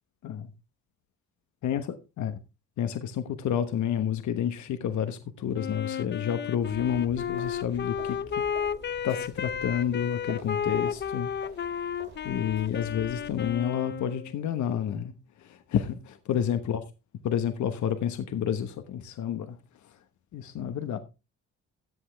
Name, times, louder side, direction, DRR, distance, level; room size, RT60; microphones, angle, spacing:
voice 1, 1.6-2.4 2.8-8.4 9.0-11.3 11.8-11.9 12.2-16.8 17.2-20.0 20.3-21.0, left 9 dB, 70° left, 1.1 m, -30 dB
Wind instrument woodwind instrument, 5.5-14.4, left 8 dB, 35° left, 0.5 m, -33 dB
sound 1, 6.6-13.6, right 4 dB, 60° right, 3.5 m, -48 dB
14.0 x 8.0 x 3.4 m
cardioid pair, 90°, 30 cm